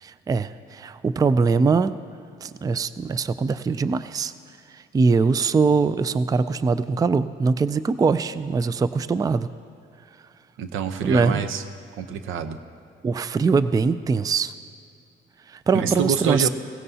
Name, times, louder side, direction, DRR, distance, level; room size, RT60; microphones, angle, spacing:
voice 1, 0.0-1.9 2.4-4.3 4.7-9.5 11.0-11.4 13.0-14.5 15.5-16.5, right 4 dB, 20° right, 14 dB, 0.3 m, -22 dB
voice 2, 10.6-11.6 12.0-12.6 15.7-16.5, right 7 dB, 85° right, 9 dB, 0.8 m, -26 dB
16.5 x 16.5 x 2.8 m, 2.4 s
cardioid pair, 90°, 20 cm